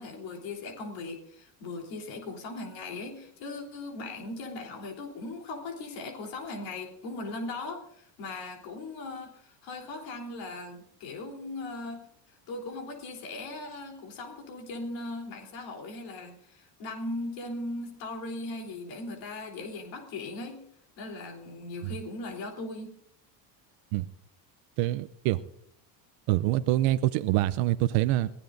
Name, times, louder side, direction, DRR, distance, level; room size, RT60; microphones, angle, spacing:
voice 1, 0.0-12.1 12.5-20.6 21.0-22.9, left 2 dB, 70° left, 2 dB, 3.6 m, -39 dB
voice 2, 24.8-25.4 26.3-28.3, right 15 dB, 80° right, 12 dB, 0.7 m, -25 dB
21.5 x 15.5 x 2.6 m, 0.69 s
supercardioid pair, 100°, 47 cm